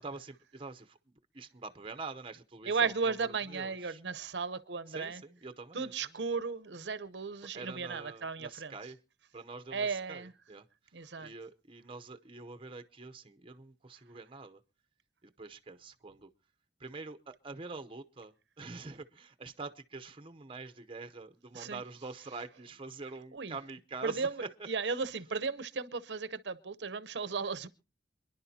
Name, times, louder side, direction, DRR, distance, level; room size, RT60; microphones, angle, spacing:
voice 1, 0.0-4.0 4.9-6.2 7.5-9.0 9.3-10.7 11.2-14.6 15.2-16.3 16.8-24.5 24.9-25.0, right 3 dB, 30° right, 0.7 m, -46 dB
voice 2, 2.7-5.2 5.7-8.7 9.7-10.3 10.9-11.3 21.5-21.8 23.3-23.5 24.0-27.7, right 5 dB, 80° right, 0.8 m, -35 dB
27.5 x 11.0 x 2.8 m
head